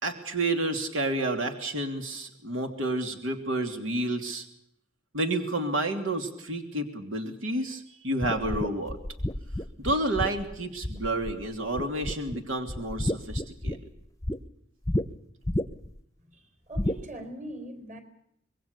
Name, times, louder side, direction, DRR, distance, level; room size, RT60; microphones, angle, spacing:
voice 1, 0.0-4.4 5.1-9.0 9.8-13.8, right 2 dB, 80° right, 5 dB, 3.0 m, -30 dB
sound 1, 8.2-11.4 11.8-12.4 12.7-14.4 14.9-15.0 15.4-16.0 16.7-17.0, left 1 dB, 15° left, 0.9 m, -30 dB
voice 2, 16.3-18.0, right 1 dB, 40° right, 9 dB, 4.3 m, -42 dB
26.0 x 22.0 x 6.9 m, 0.74 s
head